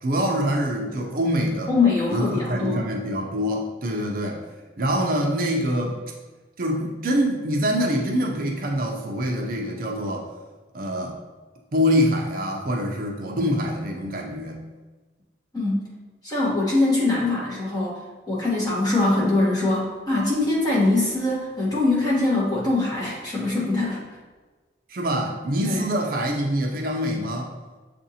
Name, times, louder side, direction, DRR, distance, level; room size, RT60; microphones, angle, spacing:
voice 1, 0.0-1.7 2.1-4.4 4.8-6.0 6.6-10.3 10.7-11.2 11.7-14.6 24.9-27.5, equal, 50° right, 0 dB, 0.5 m, -25 dB
voice 2, 1.7-2.8 15.5-15.9 16.2-18.0 18.3-24.0 25.6-25.8, left 2 dB, 20° left, -6 dB, 1.2 m, -22 dB
7.0 x 2.6 x 2.8 m, 1.3 s
head